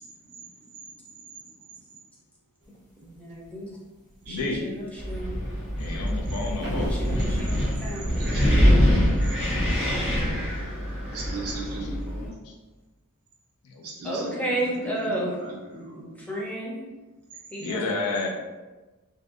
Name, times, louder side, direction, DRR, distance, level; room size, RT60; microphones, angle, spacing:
sound 1, 2.7-3.5 4.0-8.8, equal, 55° left, 1.0 m, -36 dB
voice 1, 3.0-3.7 4.3-5.4 6.8-8.4 14.0-16.8 17.5-17.8, right 1 dB, 5° left, -4 dB, 0.5 m, -33 dB
voice 2, 4.3-4.6 5.8-6.9 11.8-11.9 12.2-12.5 13.6-13.8 17.6-18.3, left 3 dB, 90° left, 1 dB, 0.4 m, -31 dB
Wind, 5.0-12.3, equal, 30° left, 1.0 m, -24 dB
voice 3, 8.1-8.7 11.1-12.3 13.8-15.5, right 2 dB, 70° right, -1 dB, 0.6 m, -37 dB
2.5 x 2.1 x 2.4 m, 1.2 s
head